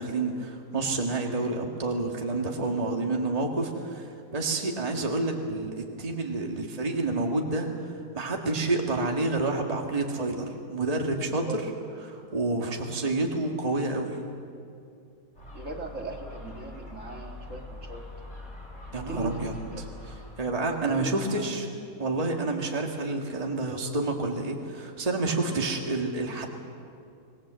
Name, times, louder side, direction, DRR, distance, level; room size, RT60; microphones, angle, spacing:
voice 1, 0.0-7.7 8.1-11.6 12.0-14.1 18.9-19.5 20.4-21.7 22.0-26.5, right 2 dB, 25° right, 1 dB, 1.9 m, -29 dB
Gull seagull, 15.3-20.4, left 2 dB, 50° left, 6.2 m, -43 dB
voice 2, 15.5-18.0 19.1-19.9 20.6-21.5, right 2 dB, 50° right, 2 dB, 2.3 m, -39 dB
25.5 x 19.0 x 7.7 m, 2.4 s
omnidirectional pair, 1.7 m